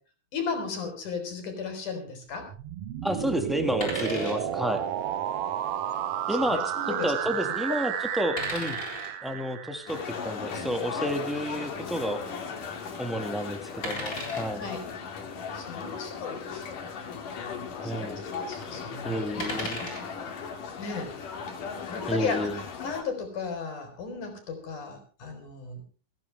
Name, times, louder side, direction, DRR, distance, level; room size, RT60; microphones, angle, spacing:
voice 1, 0.3-2.5 6.3-7.1 7.7-7.8 14.5-14.8 15.5-16.8 17.8-19.2 20.8-21.2 21.8-25.8, left 5 dB, 75° left, 5 dB, 5.3 m, -35 dB
sound 1, 2.4-10.3, right 10 dB, 65° right, 1.6 m, -32 dB
voice 2, 3.0-4.8 6.3-6.6 7.0-8.8 9.2-12.2 13.0-14.6 17.8-18.2 19.0-19.8 22.1-22.5, equal, ahead, 6 dB, 0.5 m, -30 dB
sound 2, 3.8-4.4 5.8-6.0 8.4-9.1 11.6-11.7 13.8-14.5 16.4-16.6 16.9-17.0 19.4-20.0 21.8-22.1, left 1 dB, 25° left, 7.4 m, -35 dB
sound 3, 9.9-23.0, left 6 dB, 90° left, 3.9 m, -37 dB
29.0 x 10.5 x 3.3 m, 0.37 s
omnidirectional pair, 3.6 m